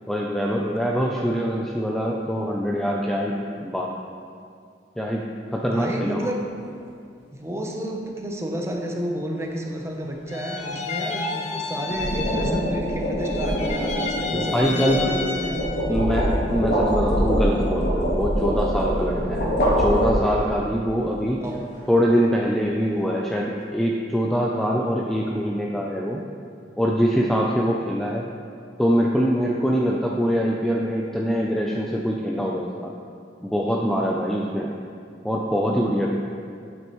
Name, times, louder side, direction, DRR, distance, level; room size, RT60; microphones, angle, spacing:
voice 1, 0.1-3.9 5.0-5.2 5.5-6.3 14.3-15.0 15.9-19.5 19.8-21.4 21.9-26.2 26.8-28.2 28.8-32.9 33.4-34.7 35.2-36.2, equal, ahead, -2 dB, 0.4 m, -23 dB
voice 2, 5.6-6.5 7.4-15.7 21.4-21.7, equal, 15° right, 1 dB, 0.8 m, -31 dB
sound 1, 6.2-6.5 11.7-20.6, equal, 65° left, 2.2 m, -24 dB
sound 2, 10.3-12.9 13.2-15.9, left 4 dB, 40° left, 0.7 m, -31 dB
8.9 x 8.6 x 3.1 m, 2.3 s
head